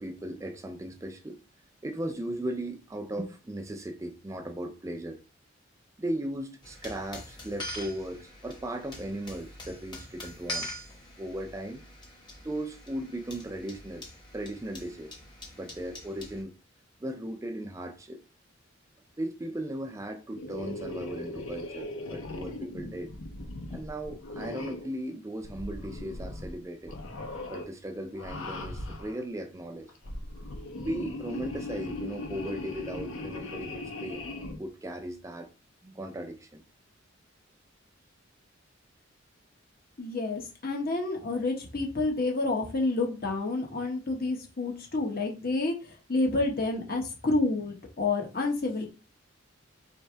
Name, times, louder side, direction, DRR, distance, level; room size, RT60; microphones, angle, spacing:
voice 1, 0.0-1.4 1.8-5.2 6.0-10.7 11.2-11.8 12.4-14.1 14.3-15.1 15.6-16.5 17.0-18.2 19.2-23.1 23.7-27.0 27.5-29.9 30.8-34.2 34.6-35.5 35.8-36.6, right 1 dB, 15° right, 0.4 m, -37 dB
sound 1, 6.6-16.4, left 1 dB, 20° left, 1.1 m, -43 dB
sound 2, 20.3-25.0 25.4-26.6 26.8-27.7 28.1-29.2 29.9-34.6, left 2 dB, 85° left, 0.9 m, -39 dB
voice 2, 40.0-48.9, left 2 dB, 50° left, 1.1 m, -29 dB
3.5 x 3.3 x 4.4 m
head